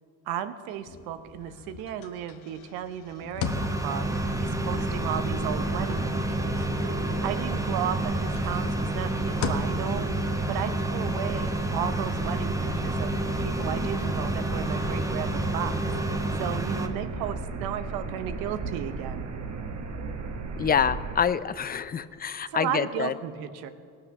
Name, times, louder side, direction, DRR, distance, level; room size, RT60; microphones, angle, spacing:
voice 1, 0.3-6.6 7.0-10.1 10.5-13.1 13.4-19.3 22.5-23.7, right 9 dB, 85° right, 11 dB, 0.9 m, -34 dB
sound 1, 0.8-7.2 7.6-13.0, left 6 dB, 65° left, 1.1 m, -40 dB
sound 2, 3.4-16.9, right 1 dB, 10° right, 1.1 m, -29 dB
sound 3, 4.0-21.2, right 4 dB, 50° right, 1.2 m, -35 dB
voice 2, 20.6-23.1, left 7 dB, 25° left, 14 dB, 0.4 m, -26 dB
18.0 x 6.5 x 5.8 m, 2.3 s
supercardioid pair, 85°, 35 cm